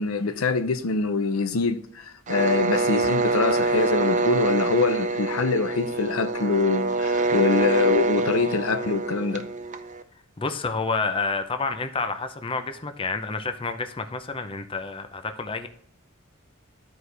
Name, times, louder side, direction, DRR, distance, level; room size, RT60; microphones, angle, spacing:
voice 1, 0.0-9.5, left 4 dB, 90° left, 0.7 m, -24 dB
sound 1, 2.3-10.0, right 3 dB, 35° right, 0.6 m, -25 dB
voice 2, 10.4-15.7, left 4 dB, 25° left, 0.6 m, -29 dB
13.0 x 4.7 x 3.3 m
head